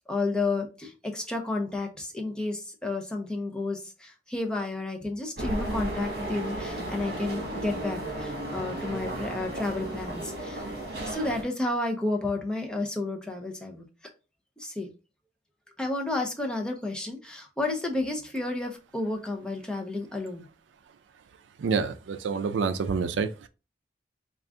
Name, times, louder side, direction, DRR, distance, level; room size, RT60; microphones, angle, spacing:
voice 1, 0.1-10.6 11.0-13.9 14.6-14.9 15.8-20.5, left 2 dB, 5° left, 0.6 m, -31 dB
sound 1, 5.4-11.4, right 1 dB, 55° right, 1.3 m, -34 dB
voice 2, 21.6-23.5, right 5 dB, 90° right, 0.4 m, -28 dB
3.7 x 2.4 x 3.5 m
head